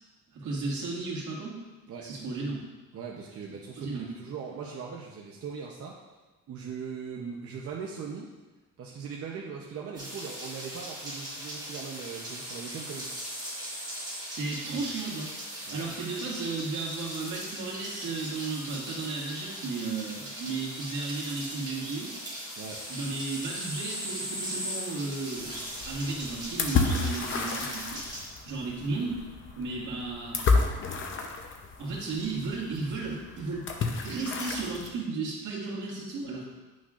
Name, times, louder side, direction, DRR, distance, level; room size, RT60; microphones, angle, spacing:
voice 1, 0.3-1.6 2.0-2.6 3.8-4.1 14.3-22.1 22.9-28.0 28.5-29.2 29.6-30.4 31.8-33.6 34.0-36.5, right 3 dB, 75° right, -4 dB, 2.1 m, -34 dB
voice 2, 2.9-6.0 6.5-8.3 8.8-13.2 15.7-15.9 22.6-22.8 29.0-29.2, right 6 dB, 50° right, -2 dB, 0.7 m, -40 dB
sound 1, 9.9-28.2, equal, 15° right, 2.2 m, -39 dB
sound 2, 25.4-34.9, left 4 dB, 40° left, 0.7 m, -31 dB
9.9 x 6.2 x 2.5 m, 1.2 s
cardioid pair, 165°, 30 cm